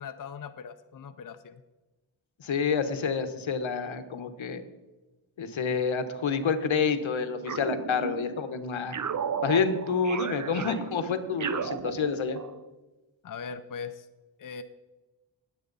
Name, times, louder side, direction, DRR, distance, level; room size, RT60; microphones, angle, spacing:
voice 1, 0.0-1.6 13.2-14.1 14.4-14.6, left 6 dB, 45° left, 9 dB, 0.7 m, -40 dB
voice 2, 2.4-4.6 5.4-9.0 9.4-12.4, left 5 dB, 80° left, 9 dB, 1.3 m, -28 dB
sound 1, 7.4-8.4 8.9-12.6, right 7 dB, 40° right, 0.7 m, -34 dB
20.0 x 8.1 x 4.0 m, 1.1 s
wide cardioid pair, 90°, 47 cm